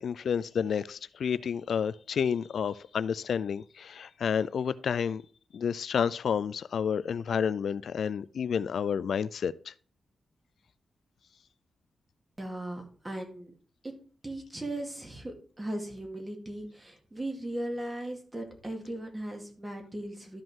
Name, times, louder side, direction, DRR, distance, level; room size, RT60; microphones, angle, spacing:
voice 1, 0.0-5.2 5.5-9.7, left 7 dB, 75° left, 0.3 m, -30 dB
voice 2, 12.4-13.5 13.8-13.9 14.2-20.4, right 1 dB, 20° right, 2.3 m, -37 dB
12.5 x 5.3 x 3.7 m
cardioid pair, 95°, 0 cm